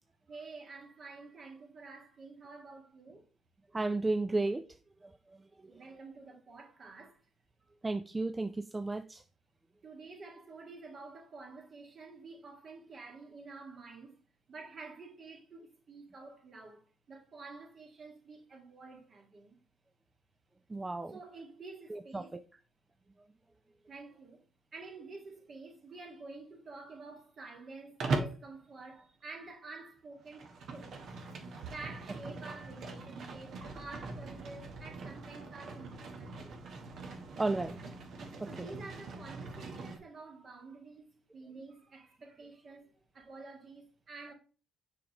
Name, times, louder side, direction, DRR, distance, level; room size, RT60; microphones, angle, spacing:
voice 1, 0.3-3.3 5.7-7.2 9.8-14.2 14.5-19.6 21.1-22.4 23.9-24.4 24.7-30.9 31.7-36.6 38.5-44.3, right 3 dB, 50° right, 2.0 m, -49 dB
voice 2, 3.7-5.8 7.8-9.2 20.7-21.2 21.9-22.4 23.2-23.3 37.4-37.9 38.4-38.7, right 2 dB, 20° right, 0.4 m, -34 dB
Livestock farm animals working animals, 28.0-28.4 30.2-40.0, right 3 dB, 65° right, 1.3 m, -41 dB
6.8 x 5.0 x 3.0 m
cardioid pair, 90°, 0 cm